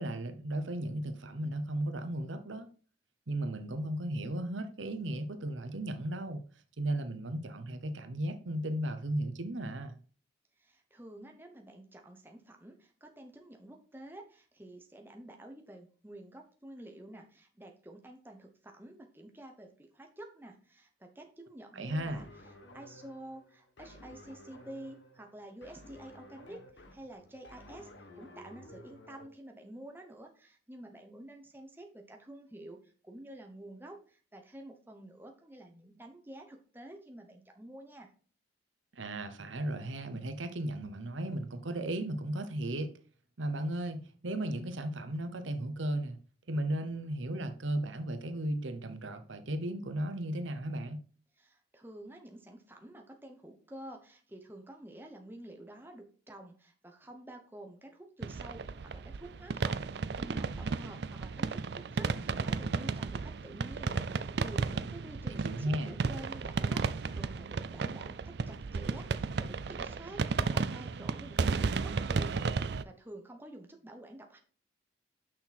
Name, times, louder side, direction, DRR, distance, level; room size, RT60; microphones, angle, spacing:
voice 1, 0.0-2.7 3.3-6.5 6.8-10.0 21.7-22.3 38.9-42.9 43.4-46.2 46.5-51.0 65.3-65.9, right 1 dB, 85° right, 0.9 m, -35 dB
voice 2, 10.6-22.3 22.7-27.9 28.2-38.1 51.4-74.4, right 1 dB, 10° right, 1.0 m, -50 dB
sound 1, 21.9-29.3, left 1 dB, 75° left, 1.3 m, -54 dB
sound 2, 58.2-72.8, right 4 dB, 60° right, 0.4 m, -33 dB
6.6 x 5.9 x 4.3 m
head